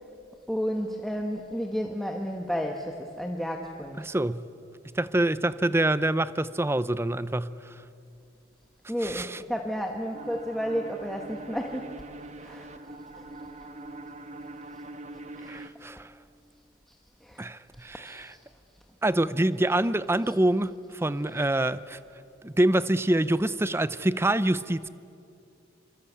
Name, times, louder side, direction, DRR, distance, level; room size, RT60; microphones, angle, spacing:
voice 1, 0.5-4.1 8.9-12.0 12.4-13.3 15.3-15.7 16.0-16.1 16.9-17.0 17.2-17.5 17.8-18.4 20.2-20.3, equal, ahead, 1.3 m, -32 dB
voice 2, 4.0-4.5 4.9-7.7 9.0-9.4 15.5-16.1 17.4-18.3 19.0-22.0 22.4-24.9, right 1 dB, 15° right, 0.6 m, -26 dB
sound 1, 10.1-15.7, right 2 dB, 40° right, 1.2 m, -43 dB
26.5 x 25.5 x 8.5 m
head